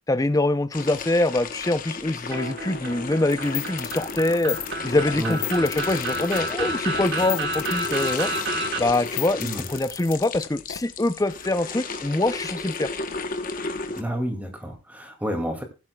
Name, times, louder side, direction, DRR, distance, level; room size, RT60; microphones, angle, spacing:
voice 1, 0.1-4.6 4.8-8.3 8.8-12.9, left 2 dB, 15° left, 0.5 m, -24 dB
sound 1, 0.7-14.0, left 3 dB, 40° left, 1.1 m, -34 dB
sound 2, 2.3-8.8, right 2 dB, 55° right, 1.9 m, -31 dB
sound 3, 3.3-10.8, left 12 dB, 65° left, 1.0 m, -34 dB
voice 2, 13.9-15.6, equal, 5° right, 2.3 m, -30 dB
20.5 x 7.6 x 2.3 m
head